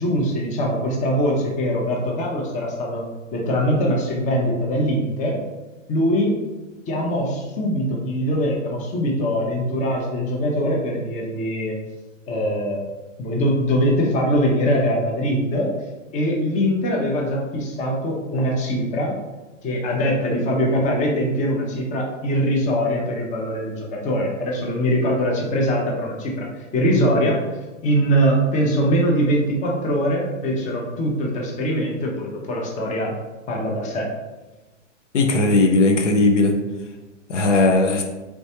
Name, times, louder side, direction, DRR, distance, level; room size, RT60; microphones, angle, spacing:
voice 1, 0.0-3.1 3.3-5.4 5.9-6.3 6.9-11.7 12.3-12.9 13.2-15.7 16.1-19.2 19.6-26.5 26.7-33.1 33.5-34.1, equal, 20° left, -1 dB, 0.7 m, -22 dB
voice 2, 35.1-36.5 37.3-38.0, left 2 dB, 70° left, 3 dB, 0.6 m, -17 dB
3.3 x 3.1 x 2.8 m, 1.1 s
figure-of-eight pair, 105°, 38 cm